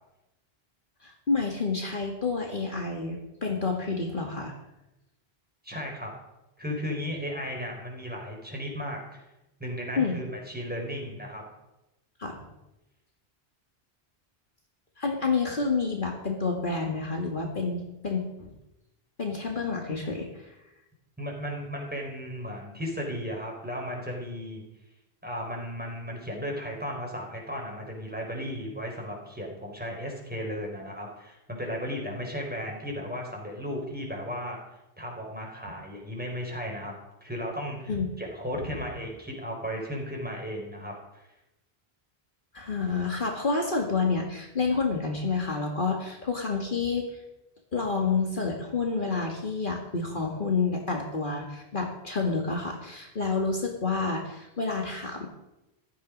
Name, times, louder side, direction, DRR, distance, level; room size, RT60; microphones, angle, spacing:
voice 1, 1.0-4.5 10.0-10.2 12.2-12.5 15.0-18.6 19.2-20.5 37.9-38.1 42.5-47.1 47.7-55.3, left 4 dB, 55° left, 1 dB, 2.1 m, -29 dB
voice 2, 5.6-6.1 6.6-9.2 9.6-11.4 21.2-24.6 25.2-34.6 35.0-36.9 37.2-41.3, equal, 10° right, -1 dB, 4.5 m, -35 dB
15.5 x 13.5 x 5.3 m, 0.92 s
omnidirectional pair, 1.1 m